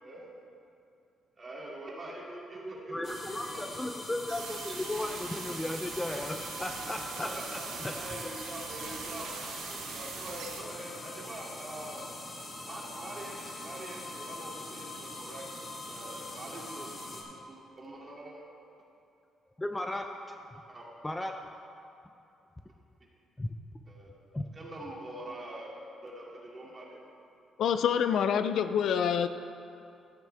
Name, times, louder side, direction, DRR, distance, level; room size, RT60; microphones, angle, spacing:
voice 1, 1.4-3.7 6.8-7.6 7.9-9.3 9.7-12.0 12.6-15.4 15.8-16.9 17.3-18.4 20.7-20.9 23.9-24.1 24.5-25.7 26.0-27.0, right 1 dB, 35° right, -4 dB, 2.6 m, -44 dB
voice 2, 2.9-7.6 19.6-20.1 21.0-21.3 23.4-23.5 24.3-24.5, left 1 dB, 15° left, 5 dB, 0.6 m, -35 dB
sound 1, 3.0-17.2, left 2 dB, 40° left, 2.1 m, -43 dB
sound 2, 4.3-10.6, right 6 dB, 90° right, 1.0 m, -42 dB
voice 3, 27.6-29.3, left 8 dB, 70° left, 10 dB, 0.4 m, -26 dB
14.0 x 9.1 x 3.5 m, 2.6 s
cardioid pair, 90°, 0 cm